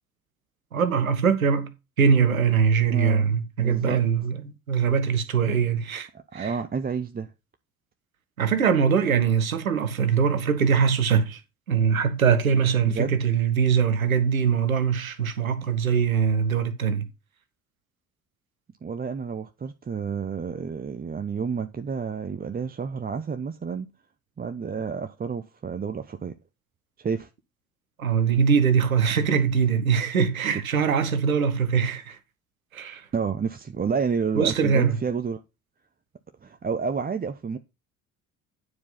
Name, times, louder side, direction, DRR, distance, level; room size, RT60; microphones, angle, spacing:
voice 1, 0.7-1.7 2.0-6.5 8.4-11.4 11.7-17.1 28.0-32.2 32.7-33.1 34.3-35.0, right 6 dB, 85° right, 1.0 m, -22 dB
voice 2, 2.9-4.0 6.1-7.3 12.8-13.1 18.8-23.9 24.4-26.4 27.0-27.3 33.1-35.4 36.4-37.6, right 6 dB, 20° right, 0.7 m, -30 dB
9.6 x 4.8 x 5.5 m
figure-of-eight pair, 50°, 41 cm